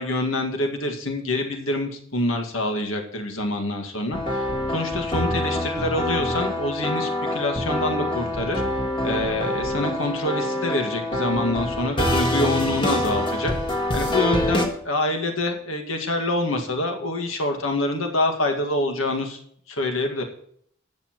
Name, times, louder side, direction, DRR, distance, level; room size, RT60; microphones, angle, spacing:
voice 1, 0.0-4.5 4.7-8.6 9.0-19.4 19.7-20.2, left 2 dB, 75° left, 3 dB, 2.0 m, -26 dB
sound 1, 4.1-14.7, left 1 dB, 25° left, 1.4 m, -25 dB
19.0 x 7.1 x 3.1 m, 0.63 s
head